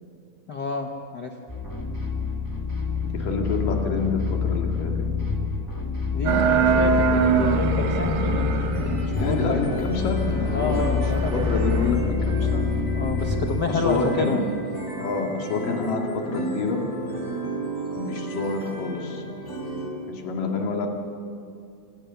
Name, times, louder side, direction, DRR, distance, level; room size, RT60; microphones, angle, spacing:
voice 1, 0.5-1.3 6.1-8.5 8.8-9.9 10.5-11.7 12.9-14.5, left 4 dB, 65° left, 3 dB, 1.0 m, -29 dB
sound 1, 1.5-13.9, left 5 dB, 10° left, 1.3 m, -27 dB
voice 2, 3.0-5.1 9.2-11.0 11.3-12.7 13.7-14.4 15.0-16.8 18.0-19.2 20.1-20.9, left 4 dB, 85° left, 1 dB, 4.0 m, -27 dB
sound 2, 6.3-11.9, right 6 dB, 70° right, 2.8 m, -25 dB
sound 3, 8.7-19.9, right 2 dB, 30° left, 4.3 m, -33 dB
28.5 x 19.0 x 7.1 m, 2.4 s
omnidirectional pair, 3.8 m